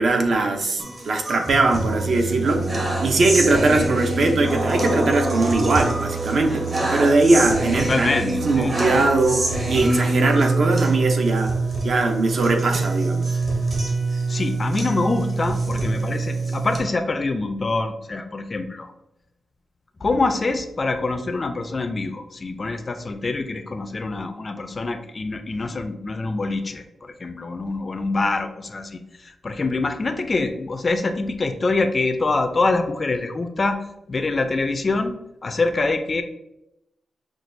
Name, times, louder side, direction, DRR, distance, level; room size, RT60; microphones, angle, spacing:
voice 1, 0.0-2.7 3.0-8.1 8.4-11.5 11.8-13.2, right 2 dB, 60° right, 3 dB, 0.6 m, -20 dB
sound 1, 0.8-16.8, right 3 dB, 35° right, 0.9 m, -25 dB
voice 2, 7.7-9.0 14.3-18.9 20.0-33.8 34.1-35.1 35.4-36.2, left 3 dB, 35° left, 8 dB, 0.3 m, -25 dB
5.8 x 2.3 x 2.6 m, 0.87 s
wide cardioid pair, 125°, 0 cm